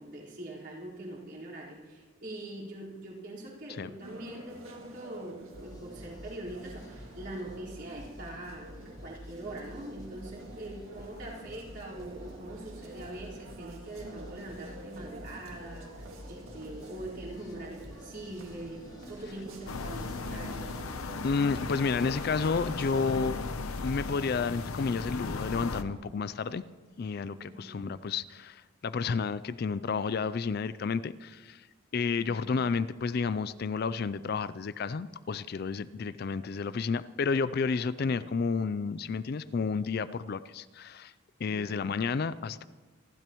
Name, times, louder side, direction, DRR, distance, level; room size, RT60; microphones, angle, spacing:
voice 1, 0.0-21.0 27.4-27.8 32.2-32.7 38.0-38.2 41.5-41.7, right 1 dB, 50° right, -7 dB, 4.4 m, -43 dB
sound 1, 4.0-23.4, right 1 dB, 80° right, 2.0 m, -49 dB
sound 2, 5.5-23.1, equal, 15° left, 1.2 m, -49 dB
sound 3, 19.7-25.8, left 3 dB, 85° left, 0.8 m, -36 dB
voice 2, 21.2-23.4 23.8-26.6 27.0-31.7 31.9-41.1 41.4-42.6, left 5 dB, 45° left, 15 dB, 0.3 m, -31 dB
27.5 x 12.5 x 3.0 m, 1.3 s
head